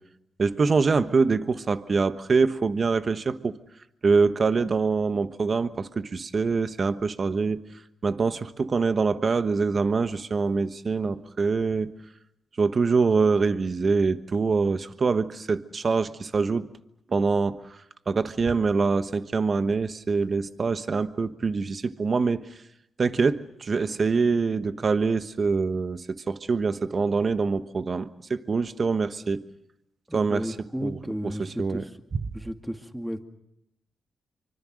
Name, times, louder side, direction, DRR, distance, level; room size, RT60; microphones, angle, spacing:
voice 1, 0.4-3.6 4.0-7.6 8.0-11.9 12.6-16.7 17.1-17.8 18.1-22.4 23.0-29.4 30.1-30.5 30.8-31.0 31.4-31.8, right 4 dB, 50° right, 11 dB, 1.2 m, -24 dB
voice 2, 30.1-31.9 32.3-33.2, equal, 5° right, 6 dB, 2.2 m, -33 dB
25.0 x 24.5 x 6.5 m, 0.83 s
cardioid pair, 65°, 0 cm